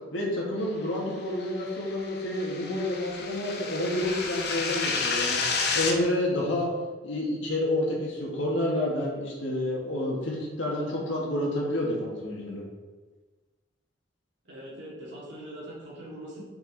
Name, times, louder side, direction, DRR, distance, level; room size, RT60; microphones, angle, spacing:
voice 1, 0.1-5.4 5.7-6.7 7.0-12.6, left 1 dB, 85° left, -3 dB, 1.8 m, -29 dB
sound 1, 1.5-5.9, left 4 dB, 55° left, 0.8 m, -30 dB
voice 2, 14.4-16.5, right 1 dB, 70° right, -6 dB, 2.2 m, -42 dB
6.2 x 6.0 x 4.1 m, 1.3 s
head